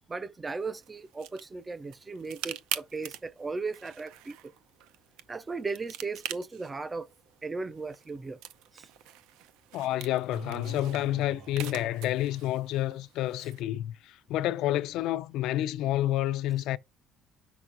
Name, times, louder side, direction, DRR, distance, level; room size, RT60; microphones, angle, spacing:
voice 1, 0.1-4.5 5.3-7.1 7.4-8.4 8.7-8.9, right 4 dB, 15° right, 0.3 m, -36 dB
sound 1, 0.6-13.6, right 12 dB, 80° right, 0.6 m, -44 dB
voice 2, 9.7-16.8, left 14 dB, 65° left, 0.4 m, -29 dB
sound 2, 10.3-12.8, right 2 dB, 50° right, 1.7 m, -45 dB
6.3 x 5.9 x 2.5 m
cardioid pair, 165°, 0 cm